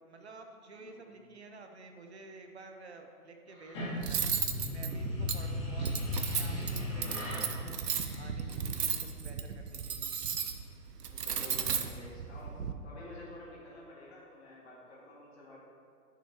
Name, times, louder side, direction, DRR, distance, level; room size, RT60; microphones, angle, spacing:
voice 1, 0.0-4.4 4.7-7.9 8.2-10.1, right 3 dB, 45° right, 4 dB, 0.7 m, -51 dB
voice 2, 0.7-1.2 8.5-8.8 11.1-12.6 12.8-15.6, left 2 dB, 40° left, -5 dB, 2.1 m, -51 dB
sound 1, 3.5-8.8, left 2 dB, 20° left, 1.5 m, -37 dB
Cutlery silverware, 4.0-12.7, right 7 dB, 85° right, 0.9 m, -35 dB
11.0 x 6.5 x 3.0 m, 2.2 s
hypercardioid pair, 165°, 46 cm